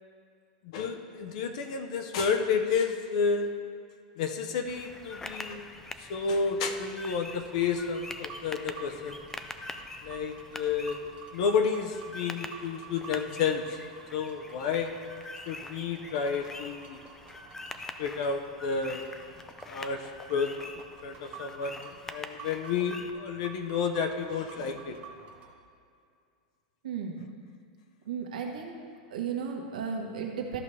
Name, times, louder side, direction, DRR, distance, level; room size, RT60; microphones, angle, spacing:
voice 1, 0.7-3.5 4.2-5.7 6.0-9.2 10.0-11.0 11.3-13.8 14.1-14.9 15.5-17.0 18.0-19.0 19.6-20.5 21.0-25.0, left 5 dB, 60° left, 6 dB, 0.7 m, -30 dB
sound 1, 4.7-23.1, left 3 dB, 10° left, 0.4 m, -45 dB
sound 2, 7.2-25.5, right 5 dB, 30° right, 0.9 m, -50 dB
voice 2, 26.8-27.3 28.0-28.7 29.1-30.6, right 6 dB, 85° right, 1 dB, 1.3 m, -34 dB
13.5 x 5.4 x 3.3 m, 2.3 s
supercardioid pair, 145°, 4 cm